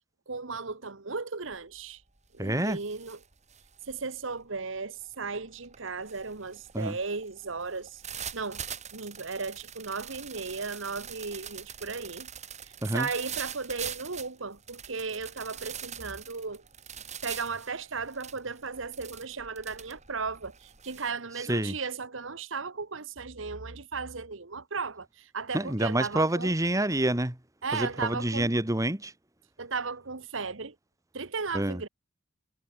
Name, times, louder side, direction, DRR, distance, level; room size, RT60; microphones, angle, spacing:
voice 1, 0.3-2.0 2.3-3.2 3.9-8.0 8.3-8.6 8.9-12.3 12.6-16.6 17.2-26.5 27.6-28.5 29.6-30.7 31.1-31.9, right 4 dB, 75° right, 1.4 m, -35 dB
sound 1, 1.5-1.8 2.2-21.1, right 8 dB, 35° right, 3.8 m, -44 dB
voice 2, 2.4-2.8 6.7-7.0 12.8-13.1 21.4-21.8 25.5-27.4 27.7-29.1 31.5-31.8, right 1 dB, 15° right, 1.6 m, -28 dB
head